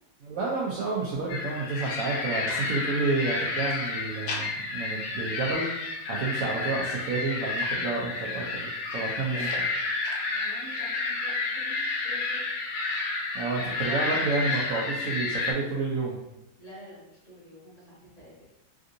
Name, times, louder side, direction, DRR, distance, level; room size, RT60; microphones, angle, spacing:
voice 1, 0.2-9.6 13.3-16.2, right 3 dB, 70° right, -5 dB, 0.8 m, -30 dB
sound 1, 1.3-15.5, left 3 dB, 75° left, 1.2 m, -31 dB
voice 2, 10.2-12.5 13.5-14.1 16.6-18.5, right 1 dB, 45° left, -7 dB, 1.5 m, -48 dB
3.5 x 2.5 x 2.5 m, 0.85 s
omnidirectional pair, 1.9 m